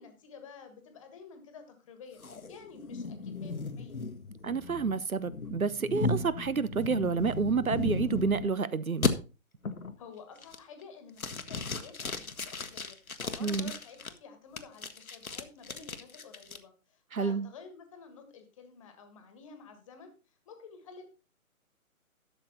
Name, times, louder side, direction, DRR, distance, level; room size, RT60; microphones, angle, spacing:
voice 1, 0.0-2.2 2.5-4.0 10.0-21.0, left 5 dB, 25° left, 1.6 m, -51 dB
sound 1, 2.2-8.5 9.0-9.1 9.6-10.0 10.4-10.8 11.2-14.1 14.6-16.6, left 3 dB, 75° left, 1.3 m, -35 dB
voice 2, 4.4-9.1 13.4-13.7 17.1-17.5, right 5 dB, 75° right, 0.9 m, -29 dB
12.0 x 7.1 x 4.1 m
figure-of-eight pair, 140°, 43 cm